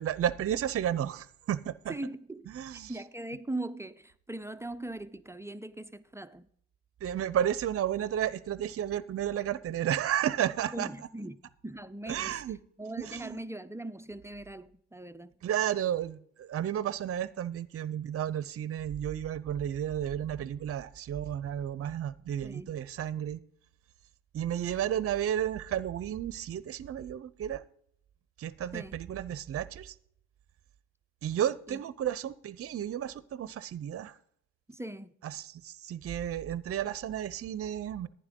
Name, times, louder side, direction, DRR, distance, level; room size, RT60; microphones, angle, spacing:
voice 1, 0.0-1.9 2.5-2.9 7.0-10.9 12.1-12.6 13.0-13.4 15.4-23.4 24.3-27.6 28.4-29.9 31.2-34.2 35.2-38.1, right 10 dB, 50° right, 0.6 m, -32 dB
voice 2, 1.9-2.5 2.9-6.5 10.7-11.4 11.6-12.4 12.8-15.3 22.4-22.7 28.7-29.0 31.7-31.8 34.7-35.1, right 1 dB, 10° right, 0.5 m, -40 dB
11.0 x 9.6 x 3.8 m
cardioid pair, 90°, 30 cm